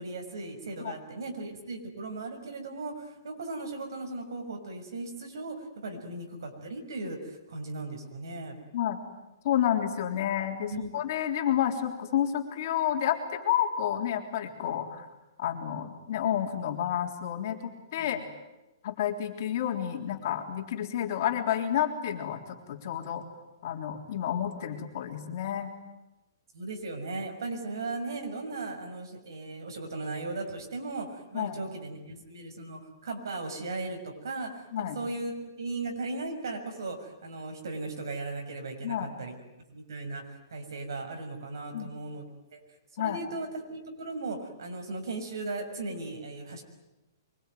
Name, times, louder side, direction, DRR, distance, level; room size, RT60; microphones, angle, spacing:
voice 1, 0.0-8.6 10.7-10.9 18.0-18.2 26.5-39.3 39.7-42.3 42.5-42.6 43.0-46.6, right 3 dB, 75° right, 4 dB, 6.5 m, -37 dB
voice 2, 9.4-15.1 15.4-18.2 18.8-23.2 23.6-25.7 31.3-31.6 34.7-35.0 38.8-39.1 41.7-41.9 43.0-43.2, left 10 dB, 45° left, 4 dB, 3.7 m, -30 dB
24.0 x 24.0 x 9.5 m, 0.98 s
hypercardioid pair, 165°, 2 cm